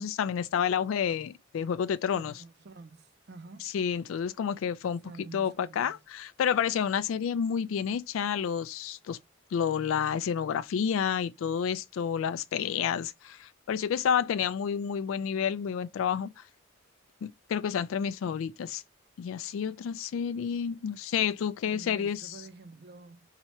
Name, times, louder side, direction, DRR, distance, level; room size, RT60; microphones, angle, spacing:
voice 1, 0.0-2.4 3.6-5.0 5.3-9.2 9.5-16.4 17.2-18.8 19.2-22.5, left 7 dB, 80° left, 0.3 m, -30 dB
voice 2, 2.2-3.7 5.0-5.9 21.6-23.2, right 3 dB, 55° right, 0.5 m, -48 dB
2.9 x 2.9 x 4.3 m
head